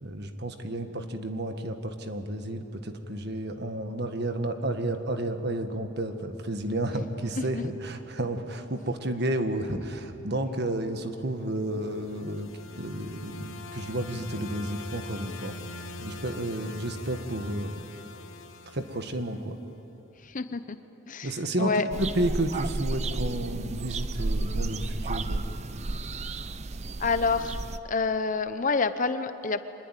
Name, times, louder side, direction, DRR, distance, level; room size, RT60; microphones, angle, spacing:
voice 1, 0.0-12.5 12.8-15.5 16.0-17.8 18.7-19.6 21.2-25.4, right 1 dB, 55° right, 7 dB, 1.6 m, -31 dB
sound 1, 11.5-19.7, left 2 dB, 85° left, 1.3 m, -43 dB
voice 2, 20.3-20.8 21.1-21.3 21.6-21.8 27.0-27.6 27.8-29.6, left 4 dB, 40° left, 11 dB, 0.8 m, -27 dB
sound 2, 21.9-27.8, right 2 dB, 35° right, 0.6 m, -32 dB
25.0 x 21.0 x 9.2 m, 2.9 s
head